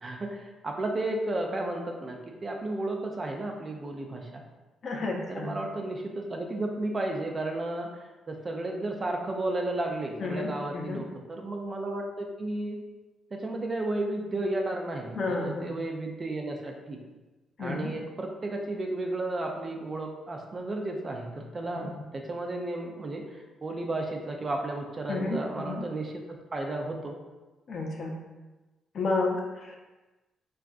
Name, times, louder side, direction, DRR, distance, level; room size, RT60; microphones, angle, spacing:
voice 1, 0.0-4.4 5.3-12.8 13.3-17.0 17.6-27.2, right 2 dB, 35° right, 2 dB, 0.4 m, -33 dB
voice 2, 4.8-5.5 10.2-11.0 15.1-15.8 17.6-17.9 21.7-21.9 25.1-25.8 27.7-28.2 28.9-29.8, left 3 dB, 50° left, 0 dB, 0.5 m, -31 dB
3.6 x 2.3 x 2.4 m, 1.1 s
cardioid pair, 90°, 0 cm